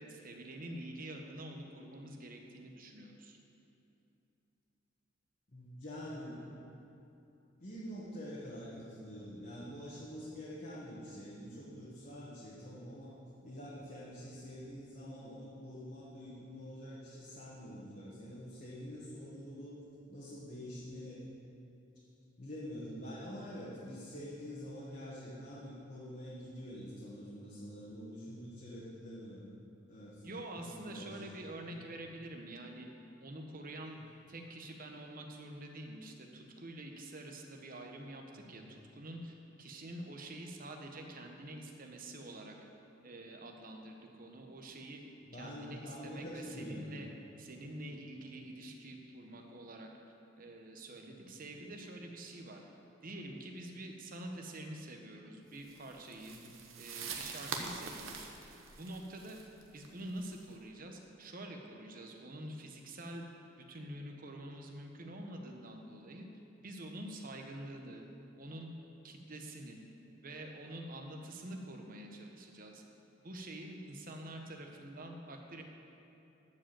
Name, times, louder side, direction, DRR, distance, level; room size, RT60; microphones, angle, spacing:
voice 1, 0.0-3.4 30.2-32.9 33.2-34.0 34.3-42.5 43.0-45.0 45.3-47.1 47.4-49.9 50.4-52.6 53.0-56.3 56.7-58.5 58.8-59.4 59.7-63.2 63.7-66.3 66.6-68.0 68.4-68.7 69.0-69.8 70.2-72.8 73.2-75.6, right 1 dB, 45° right, 2 dB, 1.0 m, -46 dB
voice 2, 5.5-6.4 7.6-13.1 13.4-19.8 20.1-21.2 22.4-29.5 29.9-30.3 30.7-31.3 38.3-38.7 45.2-46.8 51.1-51.2 56.3-56.5, equal, 45° left, -8 dB, 1.6 m, -46 dB
sound 1, 55.6-60.5, right 5 dB, 85° right, 1.0 m, -45 dB
12.0 x 5.2 x 7.6 m, 2.9 s
head